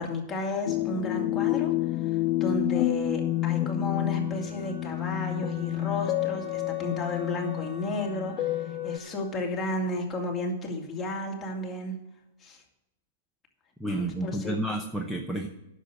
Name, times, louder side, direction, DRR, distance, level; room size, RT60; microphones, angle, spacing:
voice 1, 0.0-1.7 2.0-12.0 12.4-12.6 13.8-14.6, left 2 dB, 15° left, -1 dB, 2.3 m, -33 dB
sound 1, 0.7-9.0, left 16 dB, 30° left, 0.3 m, -29 dB
Wind instrument woodwind instrument, 2.2-10.9, equal, 30° right, 3.8 m, -48 dB
voice 2, 13.8-15.5, right 1 dB, 5° right, 2 dB, 0.8 m, -30 dB
10.0 x 6.8 x 7.6 m, 0.90 s
hypercardioid pair, 150°, 0 cm